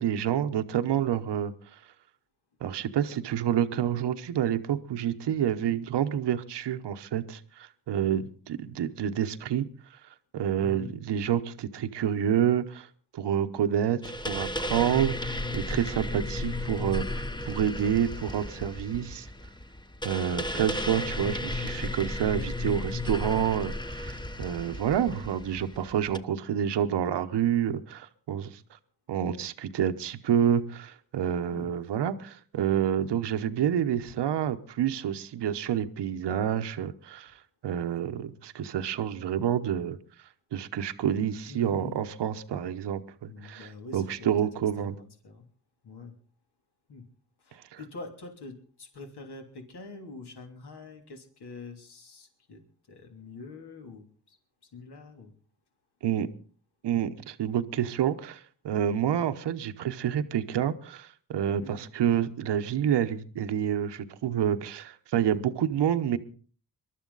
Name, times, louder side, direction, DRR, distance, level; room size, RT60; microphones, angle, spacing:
voice 1, 0.0-1.5 2.6-9.7 10.3-12.9 13.1-19.3 20.0-28.6 29.1-37.4 37.6-40.0 40.5-44.9 47.7-47.8 56.0-56.3 56.8-66.2, right 9 dB, 90° right, 1.0 m, -28 dB
voice 2, 10.6-10.9 31.5-31.7 41.5-42.0 43.3-44.5 44.8-45.5 45.8-46.1 46.9-47.0 47.4-52.6 52.9-54.4 54.6-55.3 61.6-61.8, left 3 dB, 70° left, 3.1 m, -45 dB
sound 1, 14.0-26.2, left 1 dB, 10° left, 0.9 m, -34 dB
23.0 x 12.0 x 4.0 m
cardioid pair, 65°, 40 cm